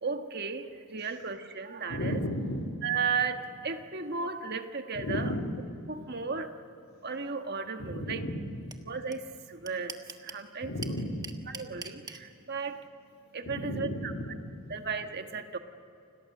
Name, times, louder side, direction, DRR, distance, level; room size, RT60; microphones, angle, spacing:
voice 1, 0.0-2.2 2.8-5.3 5.9-6.5 7.0-8.2 8.9-10.7 11.5-12.9 13.3-14.1 14.7-15.6, right 5 dB, 45° right, 6 dB, 1.5 m, -35 dB
voice 2, 1.9-2.7 4.9-5.5 7.8-8.4 10.6-11.4 13.4-14.7, equal, 70° left, -2 dB, 3.3 m, -34 dB
sound 1, 8.7-8.8 9.1-9.2 9.4-10.4 10.8-12.2, right 5 dB, 15° right, 1.3 m, -40 dB
30.0 x 27.0 x 6.7 m, 2.7 s
head